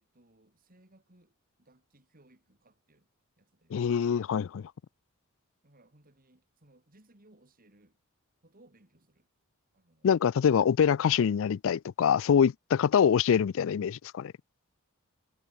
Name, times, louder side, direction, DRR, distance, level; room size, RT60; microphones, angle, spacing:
voice 1, 0.0-3.1 3.4-3.8 5.6-8.0 8.4-9.3 9.7-10.2, right 1 dB, 40° right, 3.3 m, -63 dB
voice 2, 3.7-4.7 10.0-14.3, left 7 dB, 65° left, 0.4 m, -25 dB
head